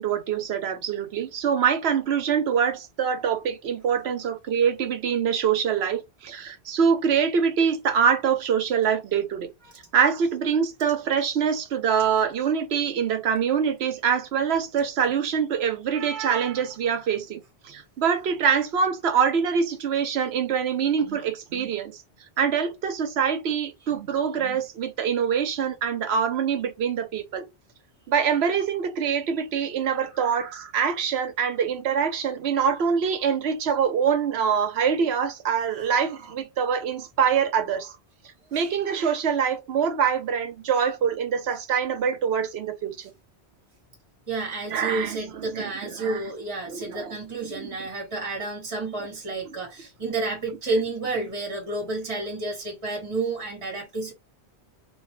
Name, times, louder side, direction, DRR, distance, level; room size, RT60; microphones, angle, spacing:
voice 1, 0.0-9.5 9.9-22.0 22.4-27.5 28.1-37.9 38.5-43.1 44.7-46.2 46.7-47.1 47.6-47.7 49.5-49.6, right 7 dB, 70° right, 0.9 m, -24 dB
voice 2, 44.3-54.1, right 3 dB, 30° right, 1.1 m, -30 dB
3.2 x 2.3 x 3.0 m
omnidirectional pair, 1.1 m